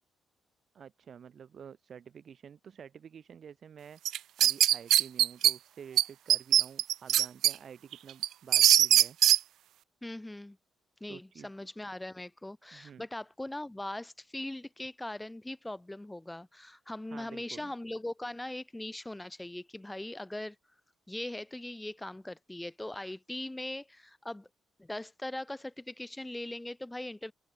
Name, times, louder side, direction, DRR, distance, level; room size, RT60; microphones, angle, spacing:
voice 1, 0.7-9.2 11.1-11.5 12.7-13.1 17.1-17.7, right 7 dB, 55° right, 7.0 m, -50 dB
sound 1, 4.0-5.5 6.0-6.1 6.3-7.5 7.9-9.4, right 12 dB, 80° right, 0.8 m, -21 dB
voice 2, 10.0-10.6 11.0-20.6 21.1-24.5 24.8-27.3, left 1 dB, 10° left, 7.5 m, -40 dB
open air
cardioid pair, 90°, 0 cm